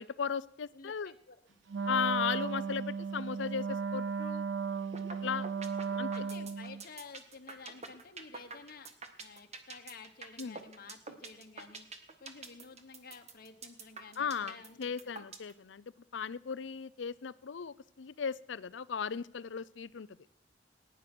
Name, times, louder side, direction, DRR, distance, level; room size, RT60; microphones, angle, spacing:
voice 1, 0.0-1.1 1.9-4.4 5.2-5.5 6.0-6.1 10.4-10.6 14.2-15.8 16.1-20.1, left 6 dB, 75° left, 18 dB, 0.5 m, -36 dB
voice 2, 0.7-2.0 6.1-8.9 9.2-11.9 12.2-15.2, left 4 dB, 55° left, 5 dB, 1.3 m, -52 dB
Wind instrument woodwind instrument, 1.7-6.8, right 5 dB, 80° right, 0.6 m, -35 dB
sound 1, 4.9-5.2 5.4-15.5, right 4 dB, 35° right, 1.5 m, -45 dB
19.5 x 10.0 x 6.1 m, 0.75 s
head